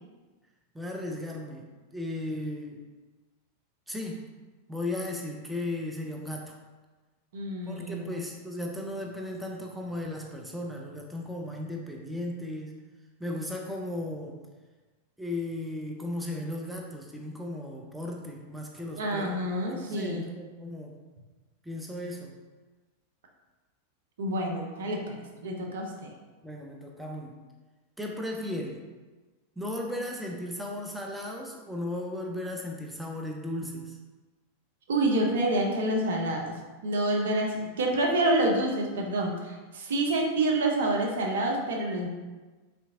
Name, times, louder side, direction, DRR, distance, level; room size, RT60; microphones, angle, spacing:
voice 1, 0.7-1.6 1.9-2.8 3.9-4.2 4.7-6.5 7.7-12.8 13.2-14.4 15.2-19.4 19.7-21.0 21.6-22.3 26.4-27.4 28.0-28.8 29.6-34.0, left 1 dB, 5° right, 0 dB, 0.4 m, -36 dB
voice 2, 7.3-8.2 19.0-20.2 24.2-26.1 34.9-36.5 36.8-42.1, right 1 dB, 60° right, 1 dB, 0.5 m, -28 dB
3.3 x 2.8 x 2.6 m, 1.3 s
figure-of-eight pair, 90°, 0 cm